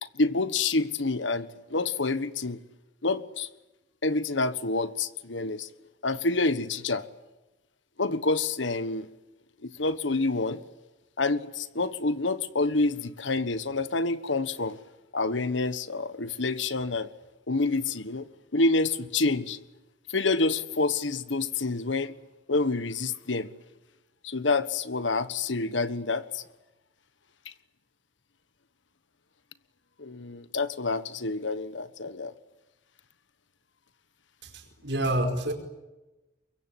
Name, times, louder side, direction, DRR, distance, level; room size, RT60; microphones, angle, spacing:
voice 1, 0.0-2.6 3.0-3.5 4.0-5.7 6.0-7.1 8.0-9.1 9.6-10.6 11.2-14.8 15.1-17.1 17.5-18.3 18.5-19.6 20.1-22.1 22.5-23.5 24.2-26.4 30.0-32.3, left 3 dB, 85° left, 1.4 m, -28 dB
voice 2, 34.4-35.5, right 1 dB, 70° right, 4.9 m, -28 dB
24.5 x 22.5 x 10.0 m
head